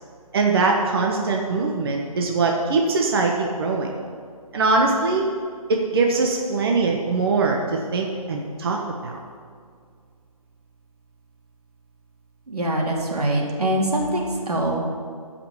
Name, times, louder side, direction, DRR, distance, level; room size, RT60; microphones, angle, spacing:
voice 1, 0.3-3.9 4.5-5.3 5.7-9.2, right 3 dB, 40° right, 0 dB, 1.2 m, -22 dB
voice 2, 12.5-14.8, right 1 dB, 85° right, -1 dB, 3.2 m, -23 dB
14.0 x 5.8 x 7.2 m, 2.1 s
hypercardioid pair, 160°, 19 cm